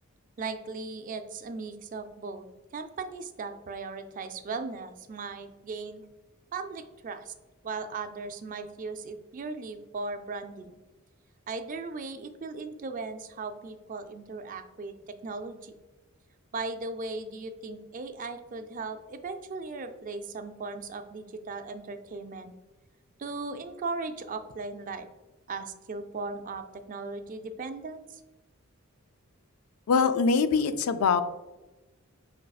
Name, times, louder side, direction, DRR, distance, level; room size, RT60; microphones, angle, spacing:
voice 1, 0.4-2.4 2.7-6.0 6.5-7.3 7.6-10.8 11.5-15.7 16.5-22.5 23.2-25.1 25.5-28.2, right 3 dB, 40° right, 8 dB, 0.3 m, -37 dB
voice 2, 29.9-31.2, left 5 dB, 80° left, 11 dB, 0.3 m, -23 dB
5.3 x 3.2 x 2.3 m, 1.1 s
head